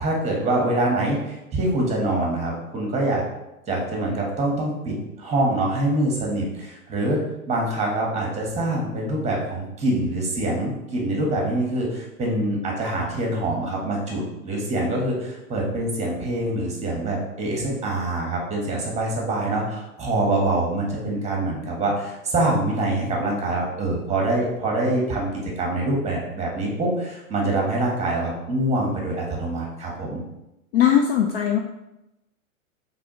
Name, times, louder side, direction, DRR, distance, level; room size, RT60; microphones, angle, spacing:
voice 1, 0.0-3.2 3.7-7.2 7.5-25.3 25.6-30.2, right 1 dB, 15° right, -1 dB, 1.3 m, -25 dB
voice 2, 30.7-31.6, left 9 dB, 40° left, 3 dB, 0.4 m, -19 dB
4.8 x 3.6 x 3.0 m, 0.92 s
hypercardioid pair, 115°, 43 cm